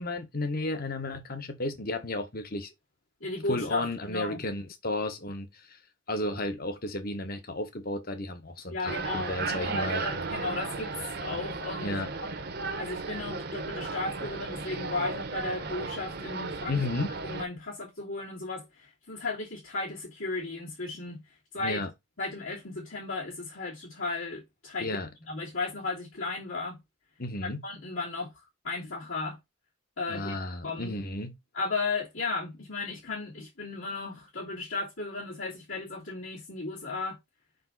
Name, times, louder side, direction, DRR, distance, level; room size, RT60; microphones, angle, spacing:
voice 1, 0.0-2.7 3.5-5.8 6.1-10.4 11.8-12.1 16.7-17.1 21.6-21.9 24.8-25.1 27.2-27.6 30.1-31.3, left 2 dB, 45° left, 1.3 m, -33 dB
voice 2, 3.2-4.4 8.7-10.9 11.2-12.0 12.8-16.8 17.2-21.2 21.5-21.8 22.2-24.9 25.3-26.8 27.4-28.3 28.6-29.4 30.0-30.3 30.6-31.0 31.5-37.2, left 3 dB, 75° left, 3.0 m, -35 dB
sound 1, 8.9-17.4, right 4 dB, 50° right, 1.0 m, -35 dB
5.5 x 5.3 x 4.0 m
head